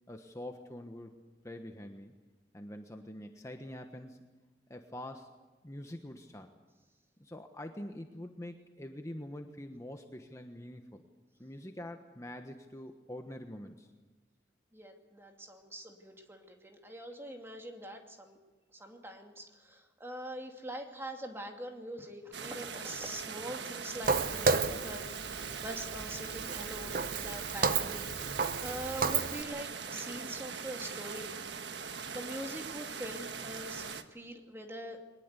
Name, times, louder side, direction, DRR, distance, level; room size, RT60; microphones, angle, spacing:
voice 1, 0.1-1.1 1.4-2.1 2.5-4.2 4.7-5.3 5.6-6.5 7.2-11.0 11.4-13.9, left 1 dB, 15° left, 5 dB, 1.2 m, -45 dB
voice 2, 14.7-18.4 18.7-28.3 28.6-31.3 31.9-35.0, right 1 dB, 15° right, 3 dB, 2.5 m, -43 dB
sound 1, 22.3-34.0, right 6 dB, 80° right, 1.4 m, -41 dB
Walk footsteps, 24.0-29.4, right 5 dB, 55° right, 1.0 m, -32 dB
22.5 x 20.0 x 8.3 m, 1.2 s
head